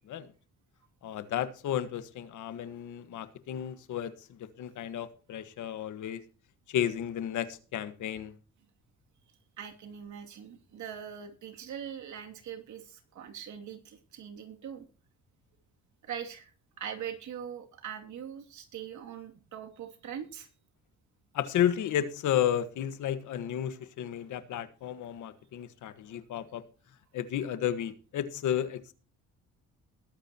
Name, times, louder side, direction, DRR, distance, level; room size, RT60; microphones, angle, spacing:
voice 1, 1.0-6.2 6.7-8.3 21.3-26.6 27.1-28.9, left 10 dB, 75° left, 1.5 m, -32 dB
voice 2, 9.6-14.8 16.0-16.5 16.8-20.5, right 8 dB, 70° right, 2.7 m, -42 dB
21.0 x 9.1 x 3.0 m
cardioid pair, 90°, 30 cm